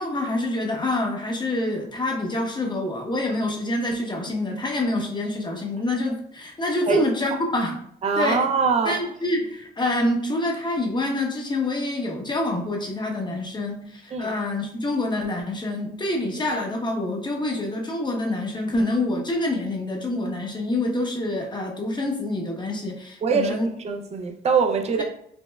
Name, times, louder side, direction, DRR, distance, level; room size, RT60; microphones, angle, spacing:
voice 1, 0.0-7.7 8.2-8.4 8.8-23.7 25.0-25.1, left 1 dB, 20° left, 0.8 m, -26 dB
voice 2, 8.0-9.0 14.1-14.3 23.2-25.0, right 5 dB, 35° right, 0.4 m, -23 dB
5.3 x 2.1 x 2.2 m
cardioid pair, 90°, 20 cm